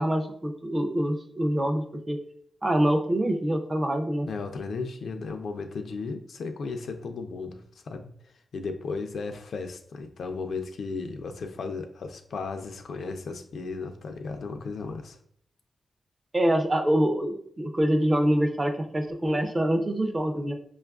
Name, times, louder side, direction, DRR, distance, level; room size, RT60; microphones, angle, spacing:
voice 1, 0.0-2.2 2.6-4.3 16.3-20.5, right 1 dB, 20° right, 4 dB, 0.4 m, -25 dB
voice 2, 4.3-8.1 8.5-15.2, left 4 dB, 75° left, 6 dB, 0.4 m, -35 dB
5.0 x 2.3 x 2.3 m, 0.63 s
wide cardioid pair, 155°, 0 cm